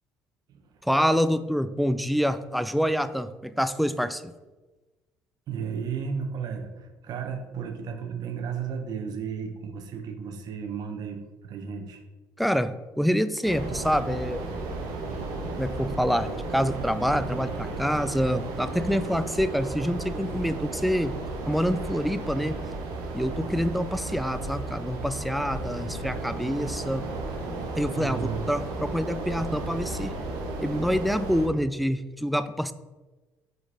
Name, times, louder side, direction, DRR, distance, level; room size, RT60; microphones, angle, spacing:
voice 1, 0.8-4.3 12.4-14.5 15.6-21.2 21.5-22.6 23.1-27.1 27.8-30.1 30.6-32.7, equal, ahead, 13 dB, 0.3 m, -26 dB
voice 2, 5.5-12.0 27.9-28.4, right 6 dB, 60° right, 5 dB, 0.9 m, -34 dB
sound 1, 13.4-31.5, right 2 dB, 85° right, 1.1 m, -34 dB
5.0 x 3.9 x 4.8 m, 1.2 s
supercardioid pair, 85°, 7 cm